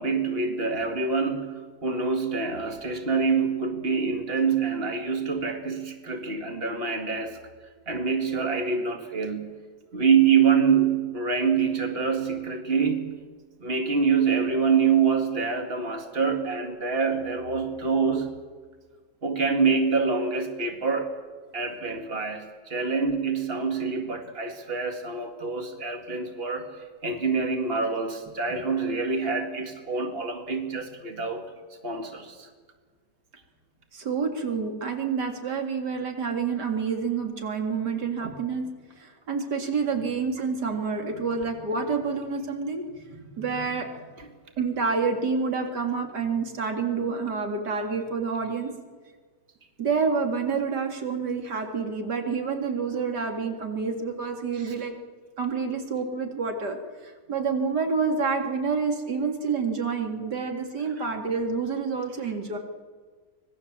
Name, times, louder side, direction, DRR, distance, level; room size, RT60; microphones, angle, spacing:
voice 1, 0.0-7.4 7.9-9.6 9.9-13.2 13.6-18.4 19.2-21.2 21.5-26.7 27.0-31.5 31.8-32.5 38.2-38.3 54.5-54.7 61.0-61.1, right 5 dB, 35° right, 5 dB, 2.4 m, -26 dB
voice 2, 33.9-38.7 39.0-44.1 44.6-48.7 49.8-54.9 55.4-62.6, right 5 dB, 90° right, 4 dB, 2.9 m, -28 dB
25.0 x 20.0 x 7.4 m, 1.5 s
omnidirectional pair, 1.7 m